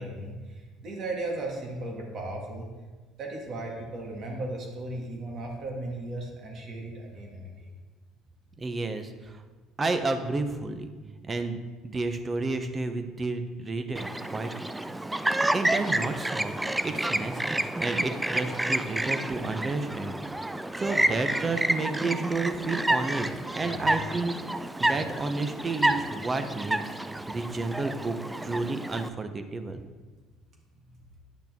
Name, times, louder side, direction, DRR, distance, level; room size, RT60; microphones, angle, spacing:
voice 1, 0.0-2.7 3.2-7.7 23.6-23.9, right 2 dB, 55° right, 0 dB, 1.8 m, -36 dB
voice 2, 8.6-9.4 9.8-10.9 11.3-14.7 15.5-16.5 16.8-23.3 23.5-24.3 24.8-26.9 27.3-28.2 28.4-29.8, right 3 dB, 30° right, 8 dB, 0.8 m, -31 dB
Chirp tweet, 13.9-29.1, right 1 dB, 10° right, 0.4 m, -29 dB
8.8 x 5.7 x 3.6 m, 1.3 s
supercardioid pair, 80°, 0 cm